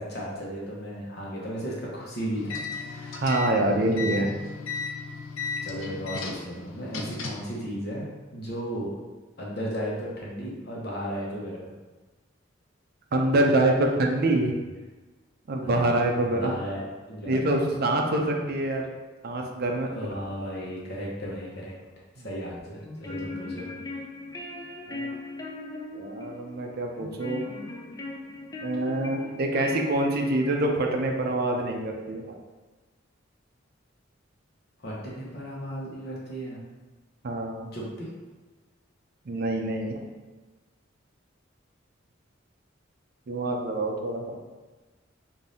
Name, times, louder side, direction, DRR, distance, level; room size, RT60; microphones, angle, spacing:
voice 1, 0.0-2.6 2.9-3.2 5.6-8.9 9.4-11.7 15.6-17.5 19.9-21.7 22.2-23.7 34.8-36.6 37.7-38.1, equal, 55° left, -4 dB, 1.0 m, -35 dB
sound 1, 2.4-7.5, left 5 dB, 85° left, 0.5 m, -35 dB
voice 2, 3.2-4.3 13.1-14.6 15.5-16.6 17.2-18.8 19.2-19.9 22.2-22.3 24.9-25.1 25.9-27.5 28.6-32.4 37.2-37.7 39.3-40.0 43.3-44.4, right 1 dB, 50° right, 2 dB, 0.5 m, -26 dB
sound 2, 22.8-30.8, left 2 dB, 20° left, 0.4 m, -38 dB
5.0 x 2.6 x 2.7 m, 1.3 s
head